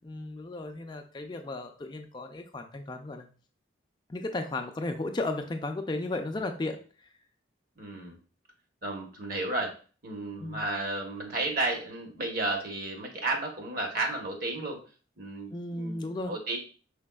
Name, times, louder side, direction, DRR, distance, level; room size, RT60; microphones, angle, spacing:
voice 1, 0.0-3.3 4.1-6.8 10.4-10.6 15.5-16.3, left 2 dB, 25° left, 5 dB, 0.3 m, -34 dB
voice 2, 7.8-8.2 8.8-9.7 10.0-14.8 15.2-16.6, right 2 dB, 50° right, 2 dB, 0.9 m, -33 dB
5.0 x 4.0 x 2.2 m, 0.38 s
head